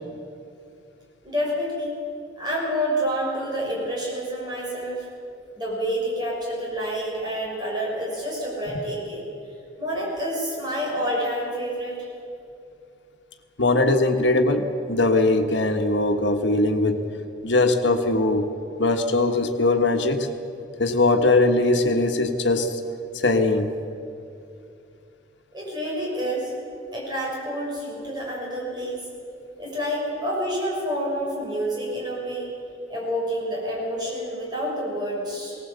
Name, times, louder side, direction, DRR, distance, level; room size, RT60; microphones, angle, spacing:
voice 1, 1.2-1.9 2.4-5.1 5.6-9.3 9.8-12.1 25.5-26.5 26.9-29.0 29.5-32.5 32.9-35.6, equal, 25° right, -4 dB, 6.1 m, -28 dB
voice 2, 13.6-17.0 17.4-18.5 18.8-20.3 20.8-22.8 23.1-23.7, left 2 dB, 90° left, 5 dB, 1.6 m, -21 dB
18.5 x 18.0 x 8.2 m, 2.6 s
head